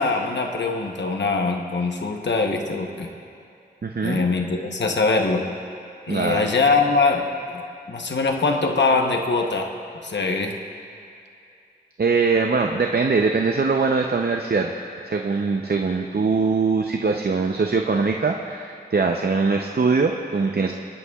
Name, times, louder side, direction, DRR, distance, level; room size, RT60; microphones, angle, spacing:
voice 1, 0.0-3.1 4.0-5.5 6.1-7.6 7.9-9.7 10.0-10.6, left 3 dB, 85° left, 3 dB, 0.9 m, -22 dB
voice 2, 3.8-4.3 6.1-6.5 12.0-14.7 15.0-20.8, right 4 dB, 60° right, 2 dB, 0.6 m, -22 dB
22.0 x 11.0 x 2.3 m, 2.5 s
wide cardioid pair, 50°, 18 cm